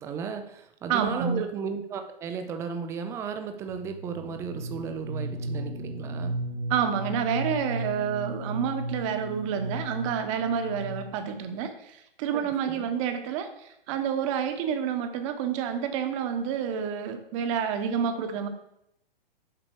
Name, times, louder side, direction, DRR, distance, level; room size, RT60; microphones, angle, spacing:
voice 1, 0.0-6.4 12.3-12.9, right 6 dB, 10° right, 7 dB, 0.4 m, -35 dB
voice 2, 0.9-1.4 6.7-18.5, right 7 dB, 35° right, 8 dB, 1.0 m, -29 dB
sound 1, 3.7-11.4, right 1 dB, 85° right, 1.2 m, -35 dB
7.6 x 4.9 x 4.8 m, 0.80 s
hypercardioid pair, 135°, 29 cm